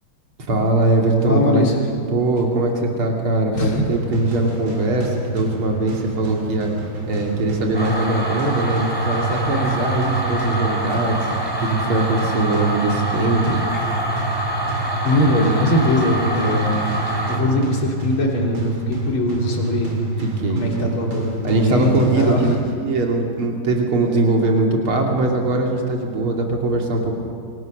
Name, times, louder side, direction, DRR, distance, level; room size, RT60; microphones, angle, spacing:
voice 1, 0.5-1.6 2.1-6.7 7.1-13.6 20.2-20.6 21.4-27.2, right 2 dB, 85° right, 0 dB, 3.6 m, -21 dB
voice 2, 1.3-1.7 3.5-3.8 15.0-17.0 17.3-19.9 20.5-22.6 24.0-24.2, left 1 dB, 75° left, -1 dB, 4.0 m, -21 dB
sound 1, 3.9-22.9, right 2 dB, 65° right, 4.0 m, -28 dB
sound 2, 7.7-17.4, right 1 dB, 10° right, 4.7 m, -25 dB
27.0 x 25.5 x 6.5 m, 2.3 s
omnidirectional pair, 2.3 m